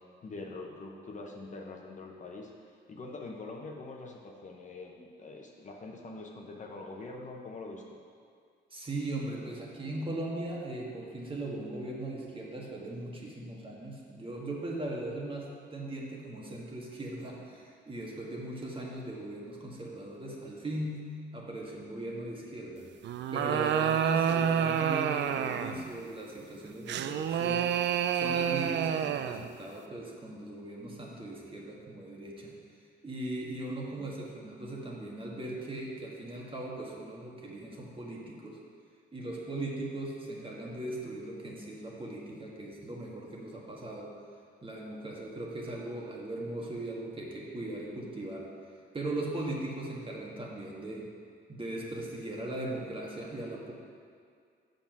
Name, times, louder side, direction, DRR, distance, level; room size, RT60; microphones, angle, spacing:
voice 1, 0.2-8.0 33.9-34.1, left 3 dB, 40° left, 0 dB, 1.0 m, -44 dB
voice 2, 8.7-21.0 21.3-22.9 23.3-27.7 28.1-32.5 33.0-38.6 39.1-44.1 44.6-48.5 48.9-51.1 51.5-53.7, right 1 dB, 25° right, -3 dB, 1.6 m, -39 dB
sound 1, 23.0-25.9 26.9-29.5, right 8 dB, 65° right, 0.4 m, -28 dB
7.1 x 5.3 x 5.9 m, 2.2 s
cardioid pair, 90°, 20 cm